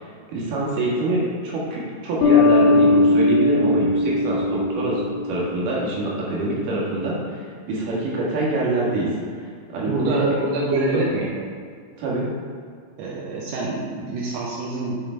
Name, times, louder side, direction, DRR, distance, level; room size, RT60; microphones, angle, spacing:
voice 1, 0.0-9.1 9.7-10.3 10.7-11.0 12.0-12.3, right 2 dB, 60° right, -5 dB, 2.9 m, -25 dB
sound 1, 2.2-5.6, left 2 dB, 65° left, 2.6 m, -19 dB
voice 2, 9.9-11.3 13.0-15.0, right 3 dB, 75° right, -4 dB, 2.7 m, -26 dB
7.6 x 5.2 x 4.5 m, 2.1 s
omnidirectional pair, 4.8 m